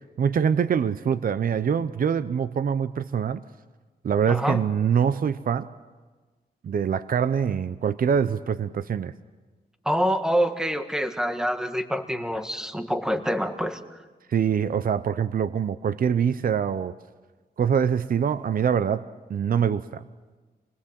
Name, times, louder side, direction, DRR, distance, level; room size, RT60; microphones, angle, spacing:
voice 1, 0.2-3.4 4.0-5.7 6.6-9.1 14.3-16.9 17.6-19.0 19.3-20.0, right 7 dB, 60° right, 14 dB, 0.7 m, -24 dB
voice 2, 4.3-4.6 9.9-13.8, equal, 5° right, 7 dB, 1.6 m, -26 dB
27.5 x 20.0 x 7.6 m, 1.3 s
wide cardioid pair, 95°, 17 cm